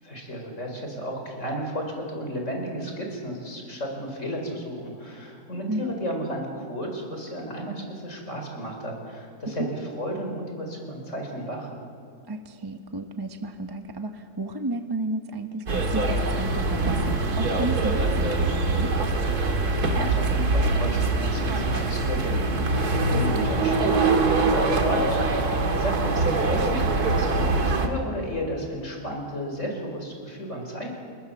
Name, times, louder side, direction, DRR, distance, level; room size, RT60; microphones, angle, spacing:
voice 1, 0.0-11.7 19.5-30.9, equal, 50° left, 2 dB, 5.2 m, -33 dB
voice 2, 5.7-6.0 9.6-9.7 12.3-18.9, right 2 dB, 20° right, 6 dB, 0.9 m, -32 dB
sound 1, 15.7-27.9, right 3 dB, 80° right, 2.5 m, -23 dB
29.5 x 20.5 x 7.2 m, 2.3 s
omnidirectional pair, 1.6 m